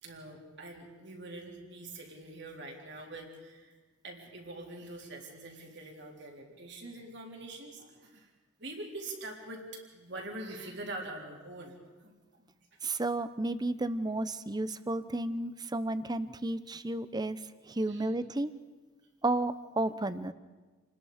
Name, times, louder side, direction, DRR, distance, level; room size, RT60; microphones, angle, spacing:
voice 1, 0.0-3.7 4.0-8.3 8.6-9.6 9.9-12.1 12.4-12.5 17.9-18.1, right 2 dB, 60° right, 1 dB, 3.8 m, -44 dB
voice 2, 12.8-17.4 17.7-18.5 19.2-20.3, right 2 dB, 20° right, 13 dB, 0.8 m, -32 dB
28.5 x 20.5 x 5.1 m, 1.3 s
head